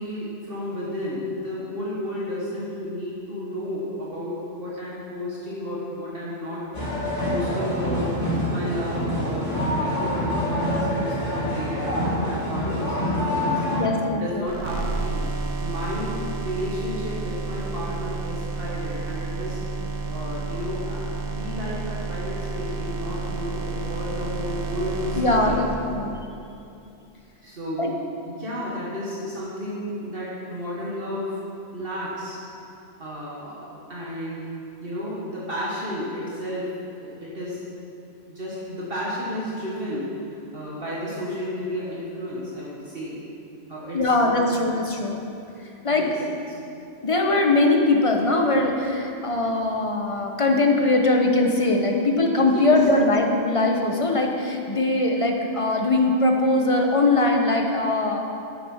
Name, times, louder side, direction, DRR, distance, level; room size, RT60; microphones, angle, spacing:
voice 1, 0.0-8.1 8.5-13.6 14.1-15.3 15.5-19.6 20.1-25.6 27.4-31.4 31.7-32.4 33.0-34.5 34.8-36.7 37.0-37.6 38.3-43.2 43.7-44.4 45.8-46.2 52.5-52.8, equal, 50° right, -7 dB, 1.8 m, -32 dB
sound 1, 6.7-13.8, left 1 dB, 85° left, 2.8 m, -26 dB
voice 2, 13.7-14.5 25.2-25.7 25.9-26.1 27.8-27.9 43.9-45.2 45.8-46.1 47.0-58.3, left 2 dB, 30° left, 1 dB, 1.0 m, -21 dB
sound 2, 14.5-26.1, right 3 dB, 70° right, 1.4 m, -30 dB
9.9 x 7.8 x 5.6 m, 2.7 s
omnidirectional pair, 1.2 m